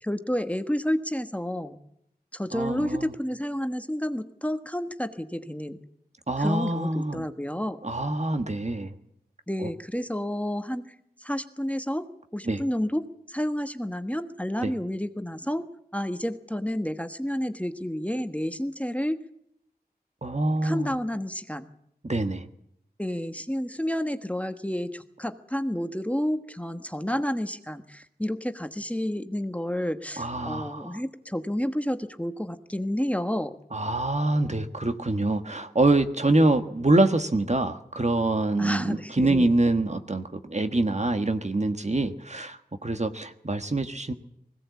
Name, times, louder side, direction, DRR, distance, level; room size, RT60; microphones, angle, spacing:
voice 1, 0.0-1.8 2.3-5.8 6.4-7.8 9.5-19.2 20.6-21.7 23.0-33.5 38.6-39.5, equal, 10° left, 9 dB, 1.3 m, -30 dB
voice 2, 2.5-3.1 6.3-7.2 7.8-8.9 9.6-9.7 12.5-12.6 14.6-14.7 20.2-20.9 22.0-22.5 30.2-31.0 33.7-44.1, right 2 dB, 45° right, 8 dB, 1.5 m, -25 dB
20.5 x 17.0 x 8.3 m, 0.74 s
wide cardioid pair, 55°, 16 cm